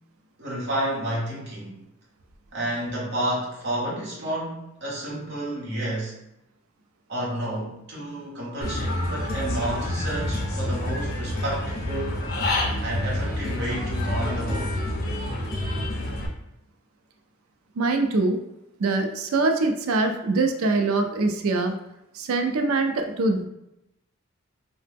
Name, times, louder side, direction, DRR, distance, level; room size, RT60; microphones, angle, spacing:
voice 1, 0.4-1.8 2.5-6.1 7.1-12.2 12.8-14.8, right 1 dB, 50° right, -4 dB, 0.9 m, -30 dB
Human voice / Bird, 8.6-16.3, left 1 dB, 45° left, 0.6 m, -28 dB
voice 2, 17.8-18.4 18.8-21.7 22.1-23.5, right 3 dB, 75° right, 5 dB, 0.4 m, -23 dB
2.8 x 2.0 x 3.4 m, 0.86 s
head